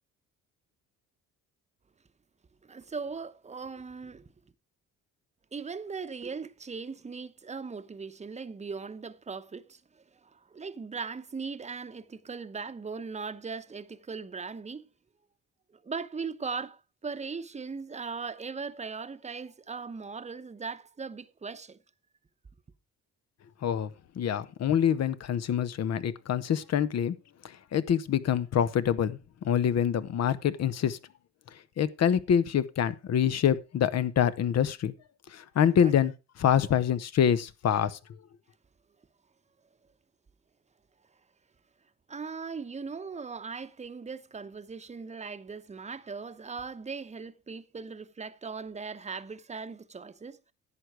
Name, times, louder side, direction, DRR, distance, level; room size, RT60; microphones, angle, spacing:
voice 1, 2.6-4.3 5.5-14.9 15.8-21.8 35.8-35.9 42.1-50.5, right 5 dB, 20° right, 0.9 m, -39 dB
voice 2, 24.2-27.1 27.7-29.2 29.4-31.0 31.8-34.9 35.3-36.1 36.4-38.0, left 9 dB, 60° left, 1.0 m, -25 dB
11.0 x 8.2 x 4.8 m
cardioid pair, 90°, 30 cm